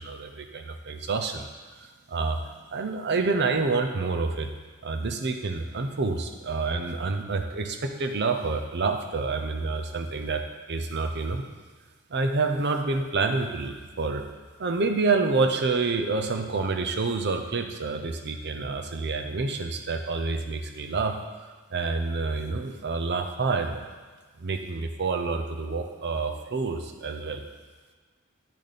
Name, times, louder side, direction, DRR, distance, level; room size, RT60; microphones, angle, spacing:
voice 1, 0.0-4.5 4.8-10.4 10.7-11.5 12.1-14.3 14.6-21.2 21.7-23.8 24.4-27.4, right 3 dB, 50° right, 6 dB, 0.7 m, -28 dB
8.5 x 6.5 x 4.2 m, 1.4 s
head